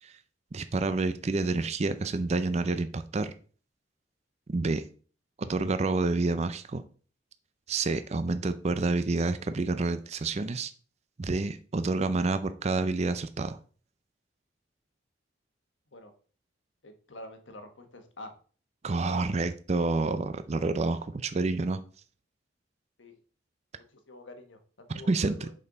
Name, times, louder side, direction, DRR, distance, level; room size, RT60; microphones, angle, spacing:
voice 1, 0.5-3.3 4.5-4.8 5.4-6.8 7.7-10.7 11.2-13.6 18.8-21.8 25.1-25.5, right 3 dB, 35° right, 11 dB, 0.5 m, -28 dB
voice 2, 16.8-18.3 23.0-23.2 23.8-25.5, left 1 dB, 85° left, 6 dB, 1.3 m, -47 dB
6.6 x 5.4 x 3.9 m, 0.41 s
head